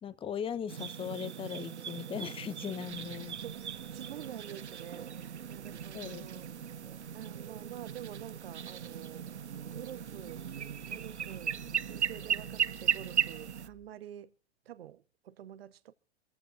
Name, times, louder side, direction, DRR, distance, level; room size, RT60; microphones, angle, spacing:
voice 1, 0.0-3.4 5.9-6.3, left 8 dB, 15° left, 0.9 m, -38 dB
sound 1, 0.7-13.7, right 8 dB, 80° right, 0.6 m, -37 dB
voice 2, 3.4-6.5 7.1-10.5 10.9-11.6 11.9-14.3 14.6-15.9, right 11 dB, 60° right, 1.0 m, -47 dB
sound 2, 3.5-13.9, left 2 dB, 10° right, 1.5 m, -62 dB
26.5 x 14.5 x 2.5 m
figure-of-eight pair, 95°, 34 cm